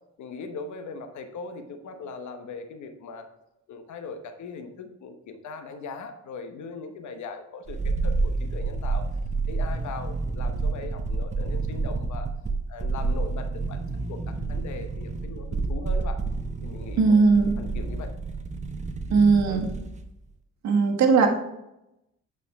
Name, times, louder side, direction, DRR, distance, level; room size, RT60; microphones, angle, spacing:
voice 1, 0.2-3.3 3.7-9.1 9.5-12.3 12.7-13.8 14.1-16.2 16.6-17.2 17.6-18.1 19.5-19.7, left 4 dB, 70° left, 7 dB, 1.1 m, -39 dB
sound 1, 7.7-20.1 20.3-20.4, right 3 dB, 25° right, 0.7 m, -29 dB
voice 2, 17.0-17.6 19.1-19.7 20.6-21.3, right 4 dB, 65° right, 2 dB, 1.4 m, -19 dB
8.3 x 5.2 x 3.5 m, 0.88 s
cardioid pair, 90°, 30 cm